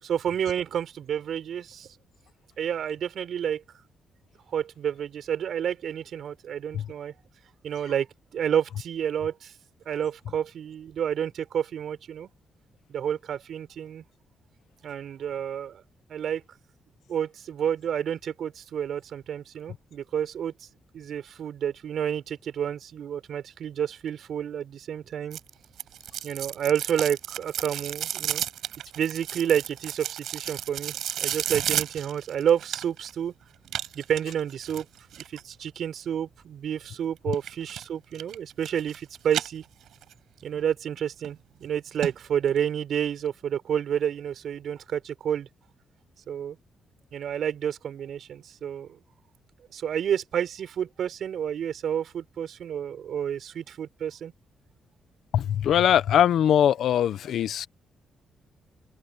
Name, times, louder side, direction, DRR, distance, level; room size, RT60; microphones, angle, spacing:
voice 1, 0.0-1.9 2.6-3.6 4.5-7.1 7.6-8.1 8.3-9.5 9.9-12.3 12.9-14.0 14.8-15.8 16.1-16.4 17.1-20.7 20.9-25.4 26.2-28.4 28.9-33.3 33.9-34.9 35.3-39.6 40.4-45.5 46.3-46.6 47.1-49.0 49.7-54.3, right 9 dB, 60° right, 5.6 m, -30 dB
sound 1, 25.3-33.1 33.7-35.4 37.3-37.8 38.2-39.0 39.3-40.1 40.5-40.6 41.2-41.3 41.7-41.8 42.0-42.1 42.5-42.6, right 11 dB, 80° right, 5.5 m, -32 dB
voice 2, 55.3-57.7, left 10 dB, 70° left, 0.9 m, -21 dB
open air
cardioid pair, 155°, 0 cm